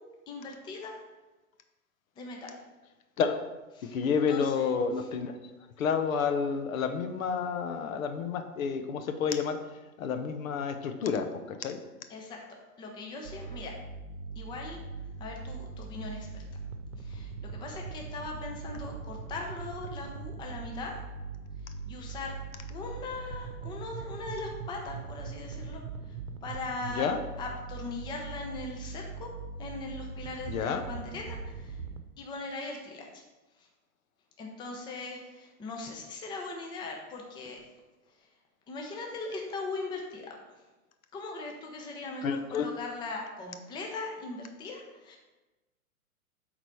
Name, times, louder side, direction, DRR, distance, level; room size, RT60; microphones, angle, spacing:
voice 1, 0.3-1.0 2.2-2.5 3.7-4.0 4.3-4.7 4.9-5.1 12.1-13.7 14.4-14.8 15.2-16.4 17.0-21.0 21.8-22.3 22.7-27.1 27.4-29.3 29.6-31.8 32.2-33.2 33.6-33.7 34.4-37.6 38.1-38.3 38.7-40.6 41.1-45.2, left 3 dB, 10° left, 1 dB, 0.6 m, -40 dB
voice 2, 3.9-5.3 5.8-9.6 10.0-11.8 27.0-27.2 30.5-30.8 42.2-42.7, left 6 dB, 65° left, 8 dB, 0.9 m, -30 dB
sound 1, 13.2-32.0, right 4 dB, 75° right, 0.9 m, -41 dB
7.8 x 4.0 x 4.6 m, 1.1 s
hypercardioid pair, 125°, 44 cm